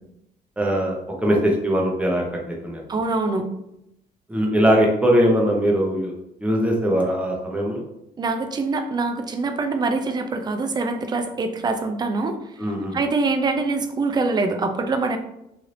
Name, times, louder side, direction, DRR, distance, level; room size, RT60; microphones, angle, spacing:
voice 1, 0.6-2.8 4.3-6.1 6.4-7.8 12.6-13.0, equal, 10° right, -1 dB, 0.8 m, -21 dB
voice 2, 2.9-3.5 8.2-12.4 12.9-15.2, right 3 dB, 25° right, 6 dB, 0.4 m, -24 dB
3.2 x 2.7 x 2.6 m, 0.83 s
cardioid pair, 110°, 17 cm